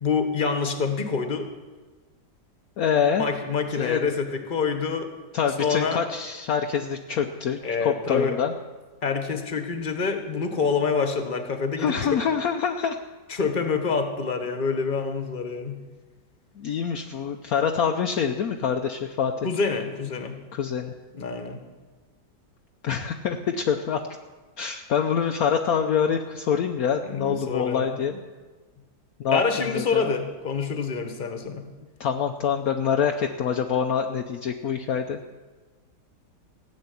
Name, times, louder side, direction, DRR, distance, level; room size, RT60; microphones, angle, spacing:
voice 1, 0.0-1.5 3.2-5.1 5.6-6.0 7.6-8.4 9.0-12.2 13.3-15.8 19.4-20.4 21.1-21.6 27.0-27.9 29.3-31.7, left 5 dB, 30° left, 6 dB, 1.4 m, -26 dB
voice 2, 2.8-3.3 3.8-4.0 5.3-8.5 11.8-13.0 16.6-19.3 20.5-20.9 22.8-24.0 24.6-28.1 29.2-30.1 32.0-35.4, left 7 dB, 65° left, 5 dB, 1.1 m, -25 dB
16.0 x 7.6 x 9.6 m, 1.3 s
omnidirectional pair, 1.8 m